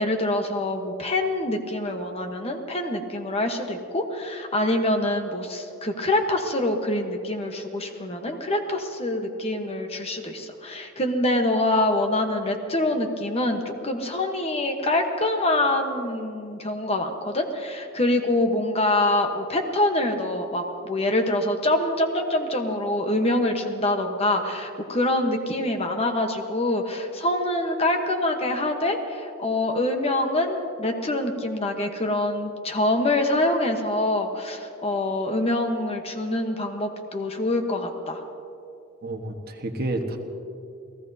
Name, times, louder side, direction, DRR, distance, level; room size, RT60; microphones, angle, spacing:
voice 1, 0.0-38.2, left 1 dB, 30° left, 4 dB, 1.1 m, -25 dB
voice 2, 39.0-40.2, right 2 dB, 45° right, 3 dB, 1.4 m, -30 dB
28.5 x 17.5 x 2.8 m, 2.6 s
head